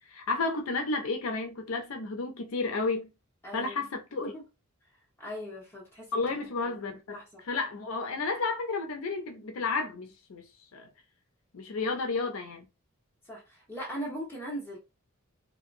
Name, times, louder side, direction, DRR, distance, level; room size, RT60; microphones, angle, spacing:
voice 1, 0.1-3.1 3.5-4.3 6.1-7.2 7.5-10.9 11.5-12.6, left 3 dB, 70° left, 0.5 m, -32 dB
voice 2, 3.4-3.8 4.2-4.4 5.2-6.8 7.1-7.4 13.2-14.8, equal, 10° left, 1.3 m, -40 dB
2.7 x 2.5 x 2.6 m
head